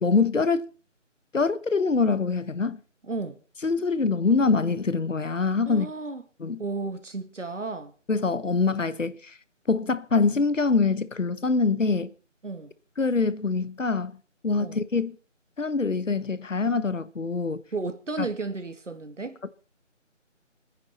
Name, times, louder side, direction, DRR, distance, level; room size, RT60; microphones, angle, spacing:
voice 1, 0.0-0.7 1.3-2.8 3.6-5.9 6.4-6.6 8.1-9.3 9.7-12.1 13.0-14.2 14.4-15.1 15.6-17.6 18.2-18.3, left 4 dB, 75° left, 1.3 m, -24 dB
voice 2, 3.0-3.4 5.7-6.2 6.6-7.9 12.4-12.7 14.6-14.8 17.7-19.4, right 3 dB, 70° right, 2.1 m, -33 dB
25.0 x 10.0 x 4.2 m
figure-of-eight pair, 175°, 38 cm